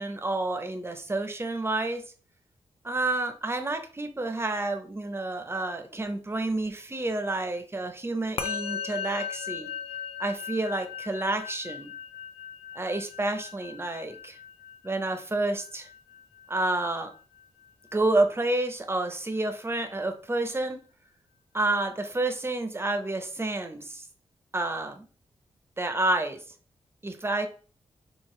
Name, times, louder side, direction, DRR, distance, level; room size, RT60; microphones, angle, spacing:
voice 1, 0.0-2.0 2.8-9.7 10.2-11.9 12.7-14.4 14.8-15.9 16.5-17.1 17.9-20.8 21.5-24.0 24.5-25.0 25.8-26.4 27.0-27.5, right 2 dB, 20° right, 7 dB, 0.9 m, -29 dB
Musical instrument, 8.4-17.9, left 7 dB, 60° left, 0.6 m, -38 dB
4.6 x 3.1 x 3.2 m, 0.39 s
cardioid pair, 75°, 11 cm